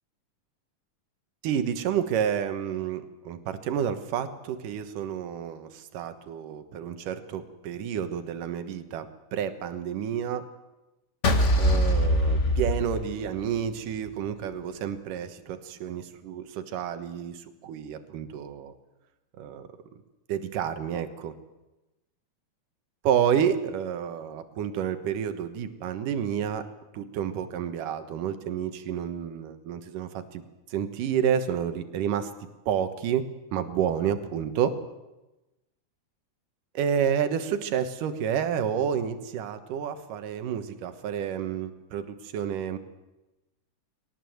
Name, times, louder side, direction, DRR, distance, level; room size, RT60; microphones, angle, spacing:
voice 1, 1.4-10.5 11.6-18.7 19.4-19.7 20.3-21.3 23.0-26.6 26.9-30.4 30.7-32.3 32.7-33.3 33.5-34.7 36.7-42.8, right 8 dB, 80° right, 9 dB, 2.9 m, -30 dB
sound 1, 11.2-13.6, equal, 70° left, 0.6 m, -23 dB
21.5 x 18.5 x 7.9 m, 1.0 s
omnidirectional pair, 3.7 m